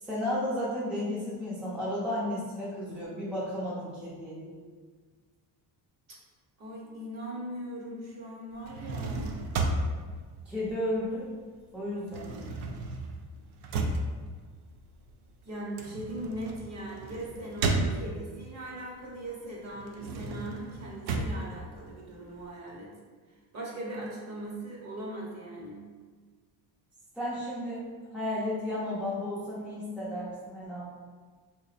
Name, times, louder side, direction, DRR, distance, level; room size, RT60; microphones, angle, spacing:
voice 1, 0.0-4.5 10.5-11.3 11.7-12.2 27.1-27.8 28.1-30.8, left 1 dB, 5° right, -8 dB, 0.5 m, -33 dB
voice 2, 6.6-9.4 15.4-22.9 23.5-25.8, right 1 dB, 40° right, -3 dB, 0.8 m, -39 dB
sound 1, 8.5-11.4 11.7-18.5 18.9-22.5, right 2 dB, 75° right, 0.5 m, -34 dB
3.9 x 2.9 x 2.4 m, 1.5 s
cardioid pair, 165°, 41 cm